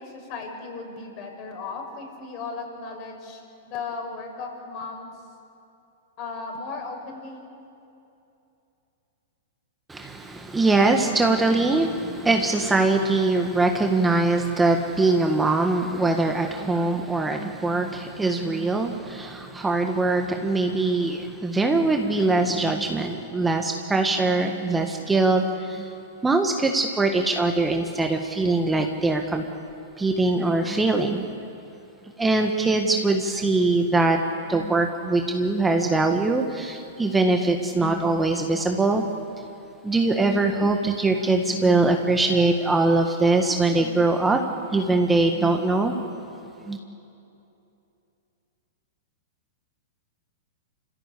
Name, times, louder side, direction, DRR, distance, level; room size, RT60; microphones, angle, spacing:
voice 1, 0.0-5.1 6.2-7.4, left 4 dB, 40° left, 2 dB, 6.3 m, -36 dB
voice 2, 9.9-29.4 30.0-31.3 32.2-34.2 34.5-39.0 39.8-44.4 44.7-45.9 46.6-46.8, right 3 dB, 10° right, 4 dB, 1.5 m, -22 dB
28.5 x 15.5 x 8.4 m, 2.8 s
hypercardioid pair, 110°, 0 cm